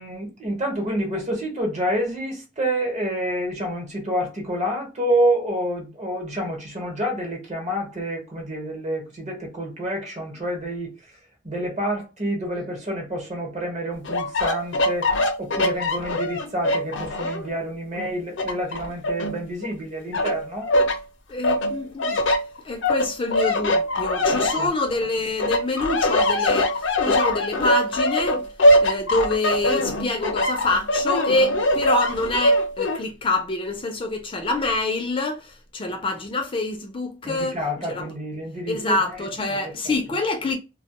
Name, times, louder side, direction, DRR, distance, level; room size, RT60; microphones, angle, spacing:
voice 1, 0.0-10.9 11.4-15.1 15.4-20.7 24.3-24.7 37.2-38.8 39.0-40.0, right 1 dB, 40° right, 1.0 m, -28 dB
sound 1, 14.0-17.5 17.9-19.7 20.1-21.0 21.4-25.1 25.4-33.0, left 1 dB, 90° left, 0.6 m, -22 dB
voice 2, 21.3-22.3 22.6-28.4 28.8-37.6 37.9-38.1 38.7-40.6, left 2 dB, 30° left, 0.4 m, -26 dB
2.2 x 2.1 x 2.9 m
head